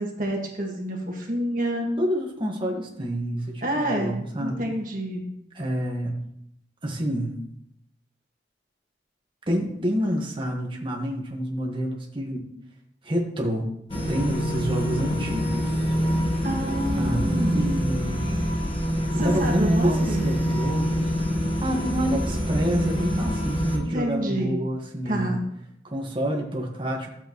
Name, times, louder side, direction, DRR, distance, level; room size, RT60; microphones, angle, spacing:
voice 1, 0.0-1.9 3.6-5.2 16.4-17.7 19.2-20.4 23.8-24.6 25.1-25.4, right 1 dB, 50° right, 0 dB, 1.7 m, -28 dB
voice 2, 2.0-4.6 5.5-6.1 6.8-7.4 9.5-12.5 13.0-15.9 17.0-18.3 19.2-21.0 21.6-25.3 25.8-27.1, equal, 30° right, -1 dB, 1.6 m, -28 dB
sound 1, 13.9-23.8, equal, 30° left, 1.4 m, -26 dB
12.5 x 7.8 x 3.1 m, 0.77 s
head